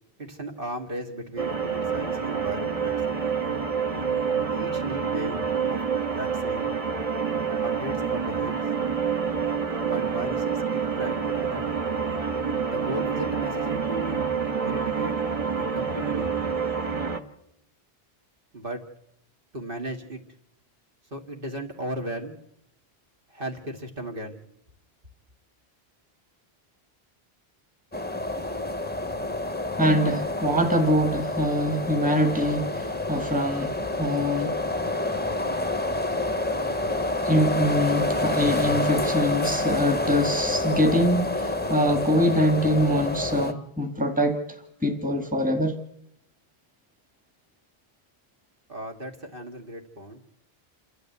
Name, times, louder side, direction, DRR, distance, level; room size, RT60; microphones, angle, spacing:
voice 1, 0.2-3.3 4.5-5.8 6.1-6.7 7.6-8.6 9.8-11.6 12.7-14.2 14.7-15.2 15.7-16.3 18.5-18.8 19.5-20.2 21.1-22.4 23.3-24.4 48.7-50.2, right 1 dB, 60° right, 2.1 m, -36 dB
sound 1, 1.4-17.2, right 6 dB, 35° right, 1.3 m, -27 dB
sound 2, 27.9-43.5, left 2 dB, 10° left, 0.8 m, -28 dB
voice 2, 29.8-34.5 37.2-44.4 44.8-45.8, equal, 10° right, 1.8 m, -24 dB
28.0 x 12.5 x 8.1 m
omnidirectional pair, 1.1 m